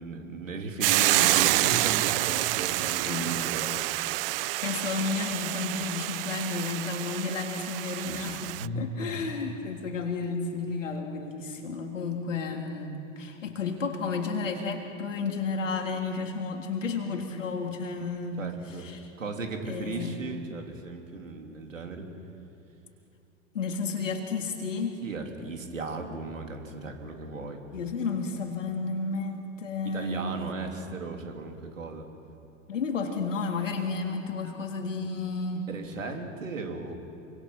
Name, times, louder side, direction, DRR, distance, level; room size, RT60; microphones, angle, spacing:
voice 1, 0.0-4.0 7.9-8.9 9.2-9.3 18.4-18.9 19.2-22.1 25.0-27.6 29.8-32.1 35.7-37.0, right 3 dB, 80° right, 3 dB, 3.3 m, -36 dB
Hiss / Boiling, 0.8-8.7, right 18 dB, 50° right, 0.4 m, -28 dB
voice 2, 4.6-18.4 18.8-19.0 19.6-20.2 23.5-25.0 27.7-30.4 32.7-35.7, left 4 dB, 75° left, 3 dB, 3.3 m, -32 dB
27.0 x 25.0 x 5.9 m, 2.7 s
figure-of-eight pair, 90°, 38 cm